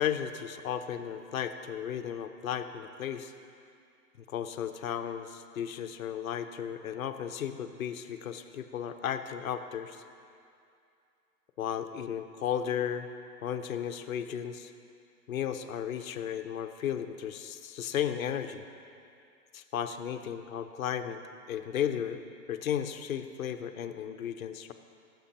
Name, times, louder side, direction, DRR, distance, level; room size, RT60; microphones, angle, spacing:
voice 1, 0.0-3.3 4.3-10.0 11.6-13.1 13.4-14.7 15.3-18.6 19.5-21.2 21.5-22.2 22.5-24.7, left 9 dB, 60° left, 8 dB, 0.6 m, -34 dB
14.0 x 7.5 x 2.9 m, 2.5 s
hypercardioid pair, 175°, 49 cm